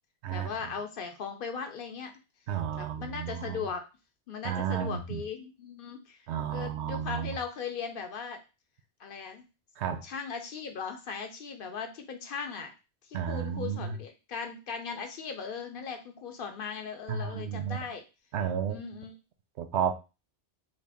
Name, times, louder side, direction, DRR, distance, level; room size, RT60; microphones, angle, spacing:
voice 1, 0.3-2.2 2.8-3.8 4.3-8.4 9.0-9.4 10.0-12.7 13.1-18.0 18.7-19.1, left 6 dB, 60° left, 0.7 m, -38 dB
voice 2, 2.5-3.6 4.4-5.2 6.3-7.4 9.8-10.0 13.1-14.0 17.1-17.8 18.3-18.8 19.6-19.9, right 8 dB, 85° right, 0.9 m, -32 dB
3.2 x 2.4 x 3.4 m
omnidirectional pair, 1.1 m